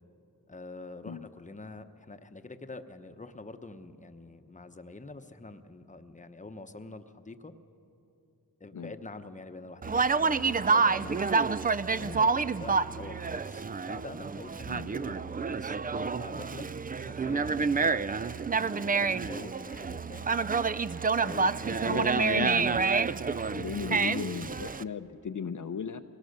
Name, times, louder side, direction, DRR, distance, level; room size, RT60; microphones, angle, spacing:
voice 1, 0.5-7.5 8.6-15.8 16.2-16.7 17.1-20.7 21.2-22.6, left 3 dB, 20° left, 8 dB, 0.9 m, -46 dB
Conversation, 9.8-24.8, right 4 dB, 25° right, 0.4 m, -28 dB
voice 2, 21.8-22.9 23.5-26.0, left 6 dB, 50° left, 8 dB, 0.7 m, -36 dB
22.0 x 18.5 x 6.6 m, 2.8 s
wide cardioid pair, 65°, 38 cm